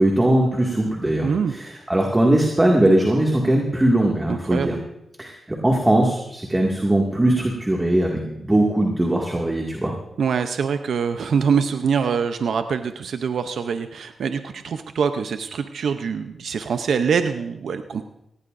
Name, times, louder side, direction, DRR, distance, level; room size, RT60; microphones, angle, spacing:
voice 1, 0.0-4.8 5.2-9.9, right 1 dB, 20° right, 0 dB, 2.1 m, -20 dB
voice 2, 1.2-1.5 4.3-4.8 10.2-18.1, right 6 dB, 80° right, 8 dB, 0.6 m, -24 dB
18.5 x 17.0 x 2.6 m, 0.84 s
cardioid pair, 70°, 0 cm